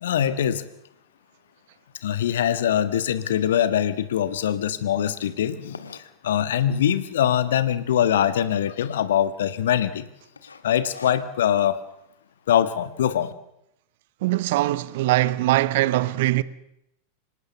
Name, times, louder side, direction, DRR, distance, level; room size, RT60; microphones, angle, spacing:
voice 1, 0.0-0.7 2.0-10.1 10.6-11.8 12.5-13.3, left 10 dB, 60° left, 1.5 m, -23 dB
sound 1, 5.7-6.7 7.3-7.8 8.1-8.2 8.4-8.5 9.0-9.4 9.7-10.0 10.4-11.6, left 4 dB, 75° left, 1.6 m, -44 dB
voice 2, 14.2-16.4, right 17 dB, 50° right, 0.9 m, -21 dB
25.5 x 18.5 x 7.0 m
figure-of-eight pair, 90°, 0 cm